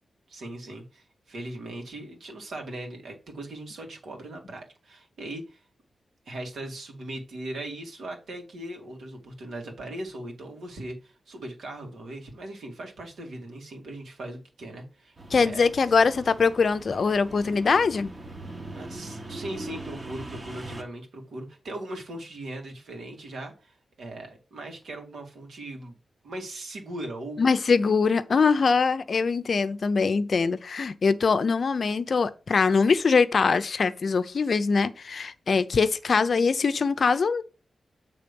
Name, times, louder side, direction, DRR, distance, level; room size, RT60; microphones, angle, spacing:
voice 1, 0.3-5.6 6.3-16.0 18.7-25.9 26.2-27.5, right 1 dB, 80° right, 2.2 m, -39 dB
sound 1, 15.2-20.8, right 2 dB, 25° right, 1.1 m, -40 dB
voice 2, 15.3-18.1 27.4-37.4, left 5 dB, 50° left, 0.6 m, -23 dB
8.1 x 3.6 x 5.3 m
wide cardioid pair, 140°, 0 cm